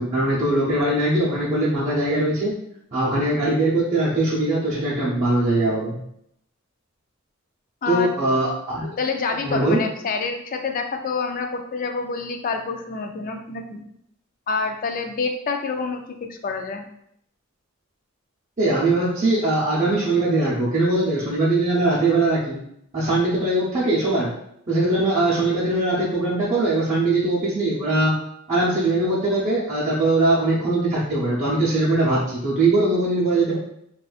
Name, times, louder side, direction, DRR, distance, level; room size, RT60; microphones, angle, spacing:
voice 1, 0.0-2.5 2.9-6.0 7.9-8.9 9.4-9.8 18.6-22.6 22.9-24.3 24.7-28.1 28.5-33.6, right 2 dB, 35° right, -9 dB, 0.7 m, -21 dB
voice 2, 7.8-8.1 9.0-13.8 14.5-16.8, left 4 dB, 40° left, 5 dB, 0.4 m, -27 dB
4.0 x 2.4 x 2.4 m, 0.73 s
head